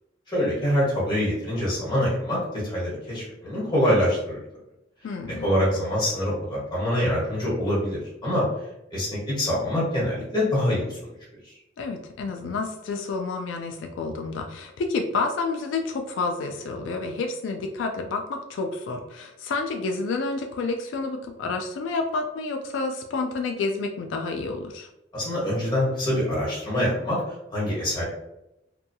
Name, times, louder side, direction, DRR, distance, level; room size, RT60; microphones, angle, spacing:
voice 1, 0.3-4.4 5.4-8.4 8.9-11.0 11.4-11.5 25.1-28.0, equal, 25° left, -6 dB, 1.3 m, -25 dB
voice 2, 5.0-5.5 11.8-24.9, left 3 dB, 90° left, 4 dB, 0.3 m, -29 dB
2.6 x 2.3 x 2.6 m, 0.87 s
head